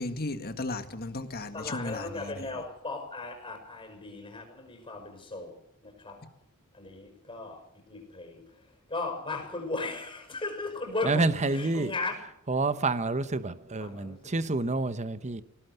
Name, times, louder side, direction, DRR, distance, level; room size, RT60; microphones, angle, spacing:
voice 1, 0.0-2.5, left 2 dB, 45° left, 1.8 m, -35 dB
voice 2, 1.5-5.5 5.8-6.3 6.7-12.1 13.8-14.8, left 3 dB, 25° left, 5.8 m, -37 dB
voice 3, 11.1-11.9 12.5-15.4, right 3 dB, 30° right, 1.0 m, -28 dB
20.0 x 17.5 x 8.0 m
head